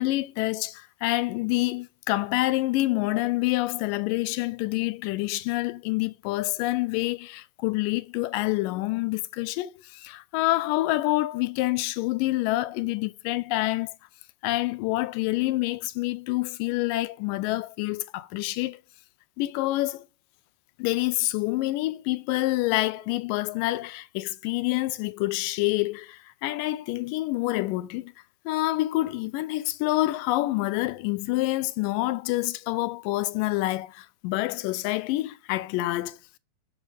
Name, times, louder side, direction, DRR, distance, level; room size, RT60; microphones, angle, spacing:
voice 1, 0.0-14.0 14.4-18.8 19.4-20.1 20.8-28.1 28.5-36.4, left 18 dB, 85° left, 2.3 m, -27 dB
7.2 x 6.2 x 4.7 m
omnidirectional pair, 3.8 m